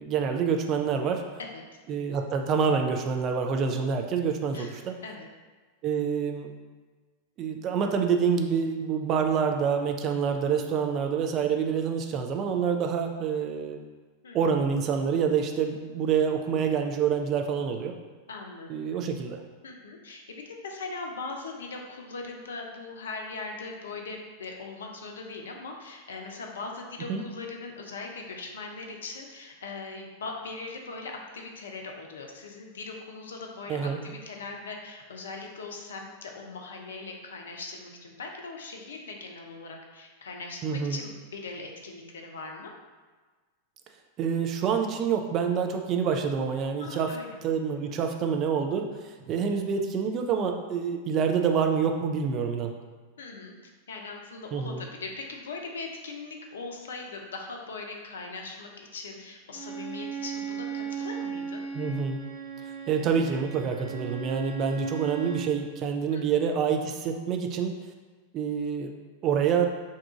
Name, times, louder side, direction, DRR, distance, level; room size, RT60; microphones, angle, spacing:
voice 1, 0.0-1.2 1.9-5.0 5.8-6.5 7.4-13.8 14.3-18.0 18.7-19.4 27.1-27.2 33.7-34.0 40.6-41.0 44.2-47.1 47.4-48.9 49.3-52.7 54.5-54.8 61.7-62.2 62.9-67.8 68.3-68.9 69.2-69.7, right 6 dB, 35° right, 4 dB, 0.3 m, -27 dB
voice 2, 4.5-5.3 14.2-14.4 18.3-18.7 19.6-42.7 46.8-47.4 47.9-48.0 53.2-53.6 53.9-61.6 66.1-66.2, left 3 dB, 65° left, 2 dB, 0.4 m, -40 dB
Bowed string instrument, 59.5-65.6, right 7 dB, 25° left, 0.9 m, -37 dB
2.7 x 2.3 x 3.6 m, 1.4 s
figure-of-eight pair, 90°, 0 cm